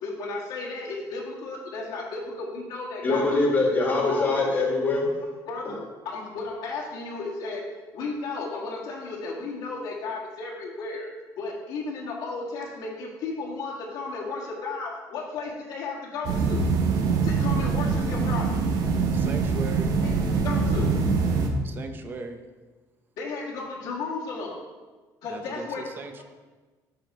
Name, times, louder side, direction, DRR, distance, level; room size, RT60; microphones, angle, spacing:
voice 1, 0.0-3.3 5.5-7.6 7.9-11.1 11.4-16.6 17.2-18.7 20.0-21.0 23.2-24.6 25.2-26.2, left 3 dB, 80° left, -6 dB, 1.7 m, -34 dB
voice 2, 3.0-5.1, left 3 dB, 25° left, -1 dB, 1.6 m, -23 dB
sound 1, 16.2-21.5, right 4 dB, 60° right, 0.9 m, -24 dB
voice 3, 19.1-19.9 21.6-22.4 25.3-26.2, right 4 dB, 30° right, 7 dB, 0.6 m, -37 dB
7.8 x 5.1 x 4.2 m, 1.3 s
cardioid pair, 155°, 7 cm